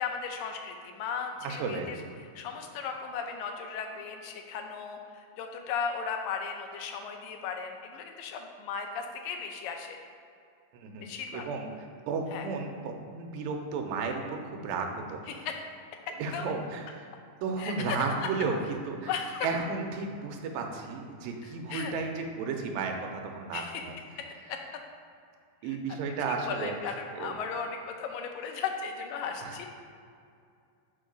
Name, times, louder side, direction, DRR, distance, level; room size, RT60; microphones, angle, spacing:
voice 1, 0.0-2.0 2.4-10.0 11.0-11.5 12.3-12.5 15.3-15.6 16.1-16.5 17.6-18.0 19.0-19.5 21.7-21.9 23.5-23.9 24.2-24.6 25.6-25.8 26.3-29.7, left 6 dB, 80° left, 4 dB, 2.1 m, -36 dB
voice 2, 1.4-1.9 10.7-11.7 12.1-15.2 16.2-17.1 17.4-18.6 18.9-19.1 19.4-23.9 25.6-26.7 27.2-27.3 29.4-29.6, right 4 dB, 80° right, 3 dB, 2.3 m, -33 dB
7.2 x 4.6 x 5.1 m, 2.4 s
omnidirectional pair, 4.4 m